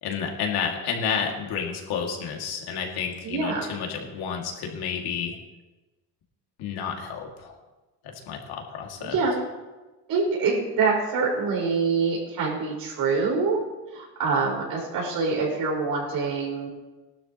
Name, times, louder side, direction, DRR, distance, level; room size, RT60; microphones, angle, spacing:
voice 1, 0.0-5.4 6.6-7.6 8.0-9.2, left 7 dB, 85° left, 1 dB, 2.4 m, -30 dB
voice 2, 3.2-3.7 9.0-9.3 10.1-13.6 13.9-16.7, right 4 dB, 65° right, -3 dB, 5.1 m, -25 dB
19.5 x 12.0 x 3.0 m, 1.2 s
cardioid pair, 155°, 37 cm